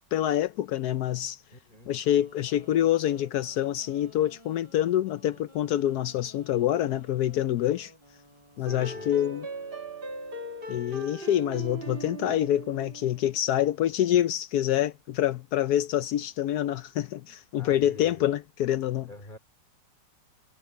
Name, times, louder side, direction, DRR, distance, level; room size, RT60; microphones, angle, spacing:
voice 1, 0.1-1.4 1.9-7.9 8.6-9.5 10.7-19.1, left 12 dB, 70° left, 1.0 m, -26 dB
voice 2, 1.5-1.9 8.6-9.1 17.5-18.3 19.1-19.4, left 2 dB, 25° left, 3.0 m, -45 dB
Wind instrument woodwind instrument, 2.0-9.2, equal, 15° right, 7.2 m, -55 dB
sound 1, 8.6-13.3, right 2 dB, 30° right, 1.7 m, -39 dB
omnidirectional pair, 1.9 m